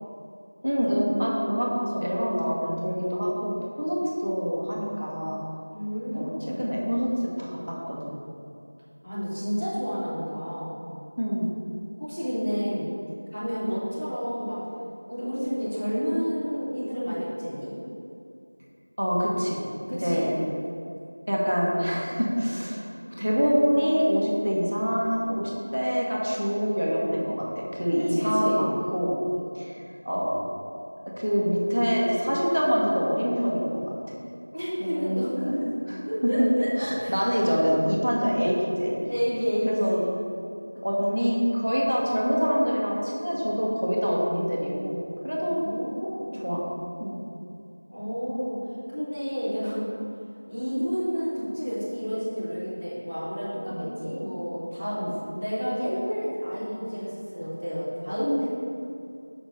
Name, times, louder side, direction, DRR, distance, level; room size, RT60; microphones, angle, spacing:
voice 1, 0.6-5.4 6.1-8.2 11.2-11.5 19.0-19.6 20.0-20.3 21.3-22.8 23.2-29.1 29.5-30.4 31.2-33.8 34.8-35.5 35.9-36.0 36.8-39.0 39.7-40.0 40.8-45.6 46.3-46.6 47.0-47.2 53.7-53.9 55.0-55.1, equal, 45° right, -4 dB, 1.5 m, -26 dB
voice 2, 5.7-6.7 9.0-10.8 12.0-12.9 13.3-14.6 15.1-17.7 19.9-20.2 28.0-28.6 34.5-35.7 36.1-36.7 37.0-37.1 39.1-40.1 45.4-46.6 47.9-48.6 48.9-49.9 50.5-55.0 55.3-58.5, equal, 5° left, -22 dB, 0.8 m, -30 dB
6.1 x 4.7 x 6.7 m, 2.4 s
figure-of-eight pair, 180°, 0 cm